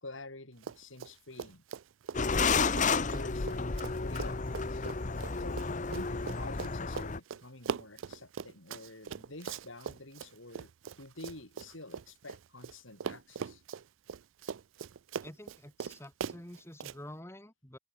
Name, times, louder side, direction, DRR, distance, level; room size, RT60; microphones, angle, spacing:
voice 1, 0.0-1.6 2.2-4.9 5.4-5.6 5.9-10.7 11.0-13.6, left 2 dB, 75° left, 4.8 m, -49 dB
Run, 0.6-1.1 1.4-12.7 13.0-17.0, right 6 dB, 75° right, 0.4 m, -41 dB
sound 1, 2.1-7.2, left 4 dB, 40° left, 0.8 m, -31 dB
voice 2, 15.2-17.8, left 1 dB, 15° left, 2.5 m, -48 dB
open air
head